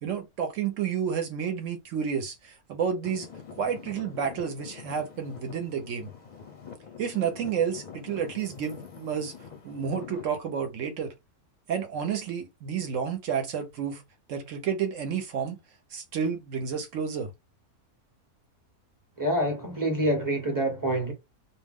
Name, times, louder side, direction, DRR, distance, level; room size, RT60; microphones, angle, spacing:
voice 1, 0.0-3.3 3.6-6.1 7.0-9.3 9.6-11.1 11.7-14.0 14.3-15.6 15.9-17.3, right 7 dB, 65° right, 0.9 m, -30 dB
Traffic noise roadway noise / Engine, 3.0-10.3, left 6 dB, 45° left, 0.5 m, -45 dB
voice 2, 19.2-21.1, right 1 dB, 20° right, 0.7 m, -26 dB
2.5 x 2.1 x 3.4 m
omnidirectional pair, 1.6 m